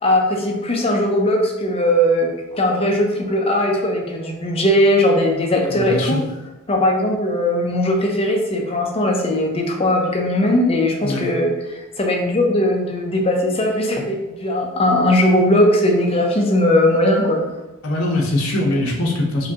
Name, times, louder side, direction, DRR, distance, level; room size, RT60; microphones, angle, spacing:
voice 1, 0.0-6.2 6.7-17.4, left 1 dB, 25° left, 1 dB, 0.6 m, -19 dB
voice 2, 5.7-6.2 11.0-11.3 17.8-19.5, left 1 dB, 70° left, -2 dB, 0.8 m, -22 dB
5.0 x 2.3 x 2.8 m, 1.0 s
head